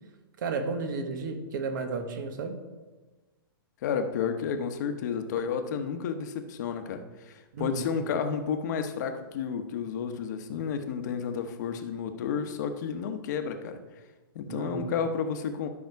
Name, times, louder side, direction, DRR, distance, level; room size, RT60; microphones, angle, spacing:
voice 1, 0.4-2.6 7.5-7.9 14.5-14.9, right 4 dB, 55° right, 6 dB, 1.4 m, -33 dB
voice 2, 3.8-13.8 14.3-15.7, left 6 dB, 50° left, 7 dB, 1.0 m, -31 dB
12.0 x 5.7 x 4.7 m, 1.2 s
hypercardioid pair, 160°, 12 cm